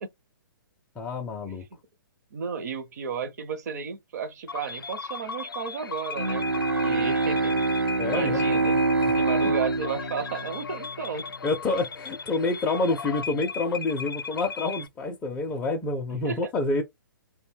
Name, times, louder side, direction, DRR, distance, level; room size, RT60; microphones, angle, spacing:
voice 1, 1.0-1.6 8.0-8.4 9.0-9.1 11.4-16.8, left 3 dB, 10° left, 0.4 m, -28 dB
voice 2, 2.3-7.6 8.1-8.8 9.2-11.3 16.2-16.5, right 6 dB, 50° right, 0.6 m, -33 dB
sound 1, 4.5-14.9, left 5 dB, 75° left, 0.4 m, -37 dB
Bowed string instrument, 6.2-11.4, right 3 dB, 85° right, 0.7 m, -26 dB
2.5 x 2.1 x 3.4 m
figure-of-eight pair, 125°, 12 cm